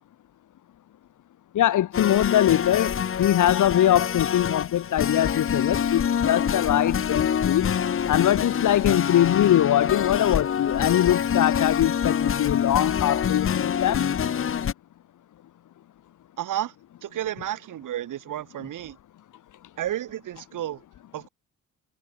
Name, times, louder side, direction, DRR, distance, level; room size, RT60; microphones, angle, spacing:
voice 1, 1.5-7.7 8.1-14.1, left 12 dB, 70° left, 1.6 m, -22 dB
sound 1, 1.9-14.7, left 8 dB, 40° left, 1.2 m, -26 dB
voice 2, 16.4-16.7 17.0-19.0 19.8-20.8 21.1-21.3, right 12 dB, 75° right, 2.6 m, -31 dB
cardioid pair, 110°, 32 cm